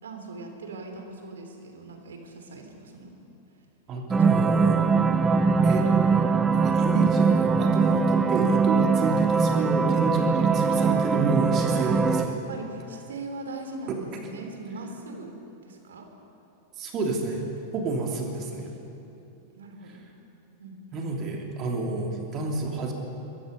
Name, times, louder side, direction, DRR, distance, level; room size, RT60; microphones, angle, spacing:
voice 1, 0.0-3.1 4.2-4.7 11.8-11.9 12.3-15.3 15.6-16.1 19.5-20.0 20.6-21.0, right 2 dB, 65° right, 4 dB, 3.2 m, -40 dB
voice 2, 3.9-4.8 5.6-6.3 6.6-12.4 16.8-17.4 17.7-18.7 20.9-22.9, right 3 dB, 35° right, 1 dB, 3.3 m, -29 dB
sound 1, 4.1-12.3, right 5 dB, 15° right, 1.0 m, -22 dB
24.0 x 21.0 x 5.4 m, 2.8 s
figure-of-eight pair, 90°, 0 cm